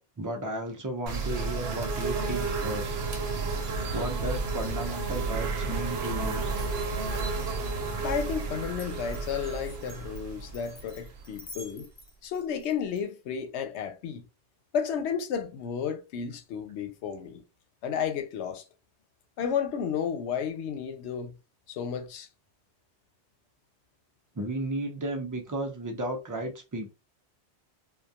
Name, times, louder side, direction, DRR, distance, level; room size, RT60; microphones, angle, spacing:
voice 1, 0.2-3.0 3.9-6.5 24.4-26.9, right 1 dB, 25° right, 0.4 m, -34 dB
sound 1, 1.1-11.7, right 4 dB, 70° right, 0.8 m, -32 dB
Glass, 6.6-13.0, left 1 dB, 45° left, 0.7 m, -50 dB
voice 2, 8.0-11.9 12.2-14.2 14.7-17.4 17.8-18.6 19.4-21.4 21.7-22.3, left 7 dB, 80° left, 0.9 m, -32 dB
2.3 x 2.2 x 2.7 m
omnidirectional pair, 1.1 m